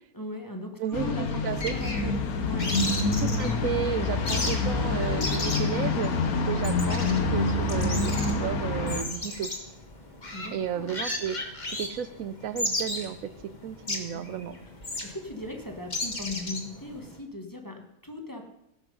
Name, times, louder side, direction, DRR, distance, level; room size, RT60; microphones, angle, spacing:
voice 1, 0.1-1.4 1.7-2.1 2.4-3.0 10.3-11.0 14.0-14.2 15.0-18.4, left 1 dB, 15° left, 2 dB, 1.2 m, -38 dB
voice 2, 0.8-1.8 3.2-9.5 10.5-13.3 13.6-14.6, right 9 dB, 75° right, 13 dB, 1.0 m, -33 dB
sound 1, 0.9-9.0, left 3 dB, 85° left, 1.6 m, -27 dB
sound 2, 1.5-17.2, left 2 dB, 30° left, 1.6 m, -36 dB
18.0 x 6.0 x 5.3 m, 0.81 s
omnidirectional pair, 1.5 m